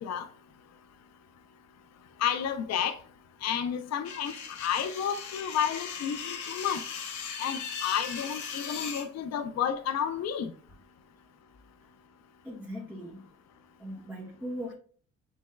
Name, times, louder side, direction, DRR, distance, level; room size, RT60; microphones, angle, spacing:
voice 1, 2.2-2.9 3.4-4.3 4.6-6.8 7.4-10.5, left 8 dB, 60° left, 0.6 m, -31 dB
sound 1, 4.0-9.1, left 6 dB, 75° left, 0.9 m, -38 dB
voice 2, 12.4-13.3 13.8-14.7, equal, 5° right, 1.4 m, -39 dB
6.2 x 3.6 x 2.2 m
cardioid pair, 90°, 30 cm